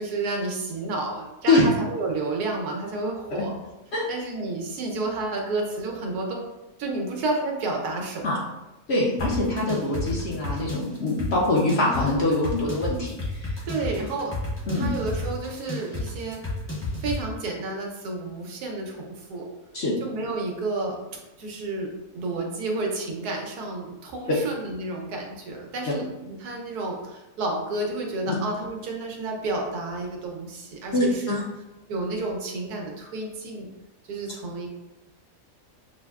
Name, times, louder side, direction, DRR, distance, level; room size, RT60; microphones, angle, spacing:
voice 1, 0.0-3.5 4.1-6.4 6.8-8.3 13.6-14.3 14.7-16.4 17.0-19.5 20.0-31.3 31.9-33.7 34.1-34.7, right 2 dB, 85° right, 1 dB, 1.3 m, -31 dB
voice 2, 8.9-13.5 14.7-14.9 19.7-19.9 28.3-28.4 30.9-31.4, left 2 dB, 55° left, -4 dB, 0.8 m, -24 dB
sound 1, 9.2-17.2, left 2 dB, 10° left, 0.6 m, -31 dB
5.9 x 2.1 x 2.3 m, 0.97 s
omnidirectional pair, 1.6 m